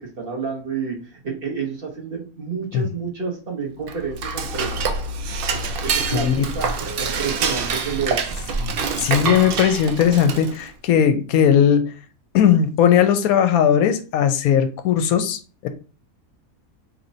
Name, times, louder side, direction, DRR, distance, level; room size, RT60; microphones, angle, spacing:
voice 1, 0.0-4.7 5.8-8.3, right 5 dB, 45° right, 0.9 m, -29 dB
Dishes pots and pans / Cutlery silverware, 3.8-10.7, right 4 dB, 70° right, 0.5 m, -26 dB
voice 2, 6.1-6.4 8.6-8.7 9.0-11.9 12.3-15.7, left 8 dB, 80° left, 1.0 m, -18 dB
4.2 x 3.0 x 2.6 m
omnidirectional pair, 1.5 m